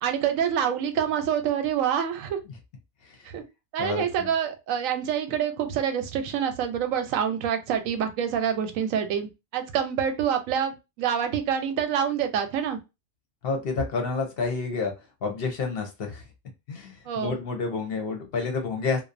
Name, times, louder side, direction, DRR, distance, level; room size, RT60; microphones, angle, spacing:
voice 1, 0.0-2.4 3.3-3.4 3.7-12.8 17.1-17.4, right 8 dB, 85° right, 6 dB, 1.0 m, -26 dB
voice 2, 3.8-4.3 13.4-14.9 15.2-16.2 16.7-19.0, left 4 dB, 55° left, 4 dB, 0.7 m, -29 dB
2.5 x 2.1 x 2.4 m, 0.25 s
omnidirectional pair, 1.3 m